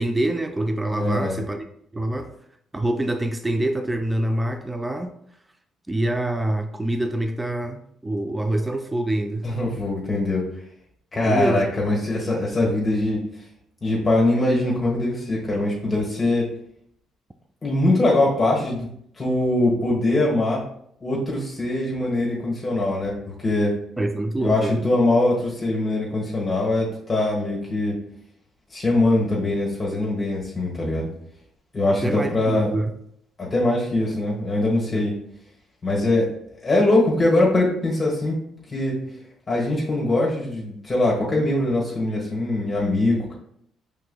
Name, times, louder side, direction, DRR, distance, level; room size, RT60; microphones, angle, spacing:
voice 1, 0.0-1.7 1.9-2.3 2.7-5.2 5.9-9.5 11.3-11.7 24.0-24.7 32.0-32.9 34.9-35.0, right 1 dB, 15° right, 7 dB, 0.3 m, -25 dB
voice 2, 0.9-1.4 9.4-10.4 11.1-13.2 13.8-16.5 17.6-18.9 19.2-20.6 21.0-23.7 24.4-28.0 28.7-31.1 31.7-32.7 33.4-35.1 35.8-36.3 36.6-38.4 38.7-38.9 39.5-43.3, left 2 dB, 30° left, -3 dB, 1.2 m, -22 dB
4.6 x 3.6 x 2.2 m, 0.70 s
supercardioid pair, 65°, 0 cm